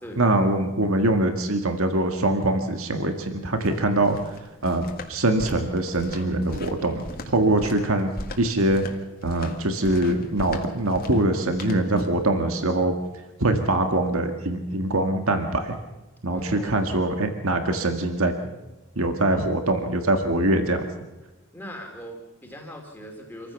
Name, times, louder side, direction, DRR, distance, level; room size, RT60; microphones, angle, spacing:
voice 1, 0.2-4.4 4.6-7.0 7.3-8.1 8.4-8.8 9.2-12.9 13.4-15.8 16.2-18.3 19.0-20.8, right 1 dB, 70° right, 6 dB, 1.8 m, -23 dB
sound 1, 3.4-12.3, left 2 dB, 40° left, 1.9 m, -40 dB
voice 2, 16.3-16.8 19.3-19.4 21.5-23.5, equal, 10° left, 1 dB, 2.7 m, -40 dB
26.5 x 15.0 x 7.0 m, 1.1 s
head